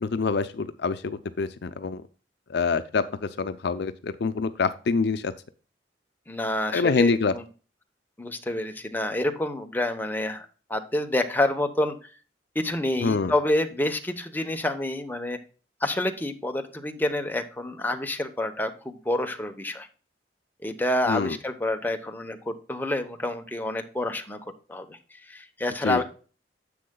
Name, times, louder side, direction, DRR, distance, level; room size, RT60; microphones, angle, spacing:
voice 1, 0.0-2.0 2.5-5.3 6.7-7.3 13.0-13.3 21.1-21.4 25.8-26.0, left 4 dB, 65° left, 12 dB, 0.5 m, -26 dB
voice 2, 6.3-7.4 8.2-12.1 12.5-15.4 15.8-19.9 20.6-24.4 24.7-25.0 25.3-26.0, left 1 dB, 10° left, 5 dB, 0.9 m, -28 dB
10.0 x 7.6 x 2.3 m, 0.36 s
head